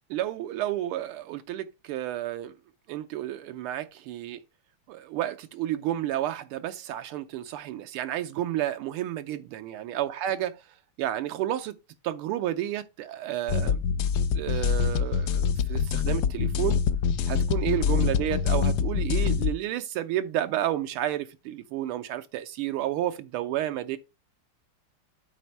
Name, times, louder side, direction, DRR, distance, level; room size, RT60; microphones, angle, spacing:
voice 1, 0.1-2.5 2.9-4.4 4.9-10.5 11.0-11.8 12.0-13.8 14.3-16.8 17.3-24.0, right 13 dB, 80° right, 1.5 m, -31 dB
sound 1, 13.5-19.5, left 7 dB, 85° left, 0.9 m, -25 dB
8.5 x 4.2 x 4.5 m
omnidirectional pair, 2.4 m